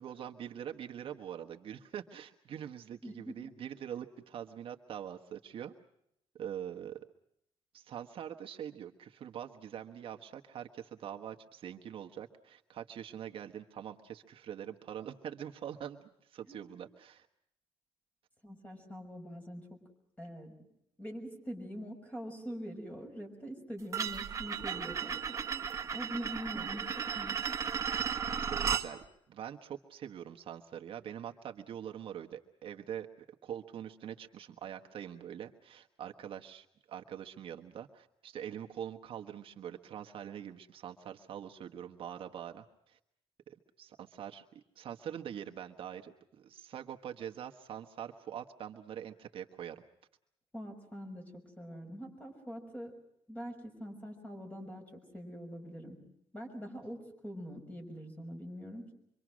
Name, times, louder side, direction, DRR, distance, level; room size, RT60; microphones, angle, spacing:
voice 1, 0.0-5.7 6.3-7.0 7.7-16.0 16.3-17.3 28.4-33.1 33.4-43.0 43.5-49.8, right 9 dB, 60° right, 4 dB, 1.4 m, -44 dB
voice 2, 3.0-3.4 16.5-16.6 18.4-19.8 20.2-20.5 21.0-25.2 25.5-25.6 25.9-26.9 27.1-27.6 50.5-52.9 53.3-56.0 56.3-58.9, equal, 15° left, 3 dB, 6.2 m, -44 dB
sound 1, 23.9-28.9, right 7 dB, 30° right, 1.7 m, -35 dB
25.5 x 25.0 x 6.3 m, 0.77 s
cardioid pair, 130°, 10 cm